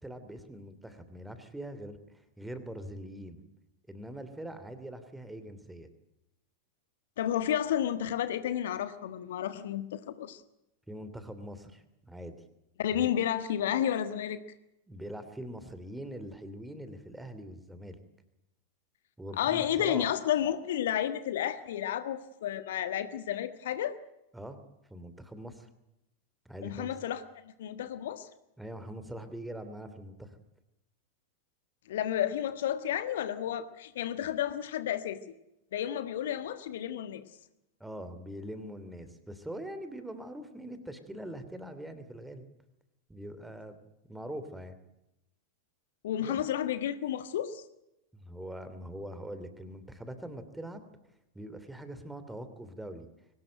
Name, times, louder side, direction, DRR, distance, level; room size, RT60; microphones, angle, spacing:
voice 1, 0.0-3.4 3.9-5.9 10.9-12.4 12.9-13.1 14.9-18.0 19.2-20.1 24.3-24.6 24.9-25.7 26.4-26.9 28.6-30.4 37.8-42.4 43.1-44.8 46.2-46.4 48.1-50.8 51.3-53.1, right 1 dB, 5° right, 11 dB, 2.9 m, -43 dB
voice 2, 7.2-10.4 12.8-14.4 19.4-24.0 26.6-27.2 27.6-28.3 31.9-35.2 35.7-37.2 46.0-47.6, left 10 dB, 60° left, 12 dB, 1.4 m, -31 dB
23.5 x 19.0 x 9.1 m, 0.88 s
figure-of-eight pair, 90°, 0 cm